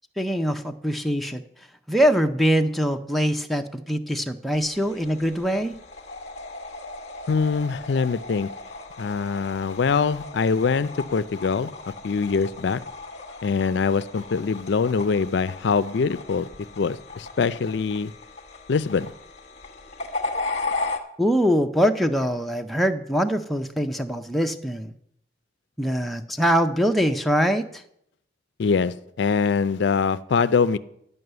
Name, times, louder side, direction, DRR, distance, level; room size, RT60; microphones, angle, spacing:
voice 1, 0.2-1.4 1.9-5.8 21.2-24.9 25.8-27.8, equal, ahead, 4 dB, 0.5 m, -23 dB
sound 1, 4.5-21.0, left 3 dB, 35° left, 1.1 m, -36 dB
voice 2, 7.3-8.5 9.0-11.7 12.0-12.8 13.4-16.5 16.8-18.1 18.7-19.1 28.6-30.8, left 5 dB, 60° left, 15 dB, 0.4 m, -23 dB
11.0 x 5.5 x 7.9 m, 0.74 s
head